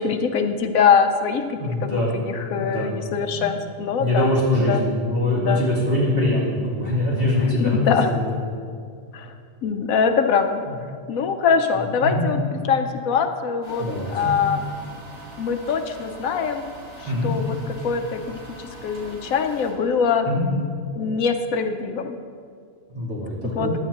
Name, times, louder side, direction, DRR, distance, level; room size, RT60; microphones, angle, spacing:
voice 1, 0.0-4.3 4.6-4.8 5.4-5.6 7.5-8.1 9.1-9.3 9.6-10.6 11.1-14.6 15.4-16.7 17.0-17.6 17.8-18.4 18.8-20.3 20.9-22.2 23.5-23.7, left 6 dB, 75° left, 6 dB, 1.1 m, -23 dB
voice 2, 1.6-2.2 2.5-3.0 3.3-3.5 4.0-8.3 10.7-10.8 12.0-12.2 13.8-14.3 17.0-17.3 20.2-20.5 22.9-23.8, left 1 dB, 40° right, -8 dB, 3.5 m, -23 dB
sound 1, 13.6-19.7, right 2 dB, 70° right, 3.2 m, -42 dB
15.5 x 11.0 x 2.9 m, 2.2 s
omnidirectional pair, 1.5 m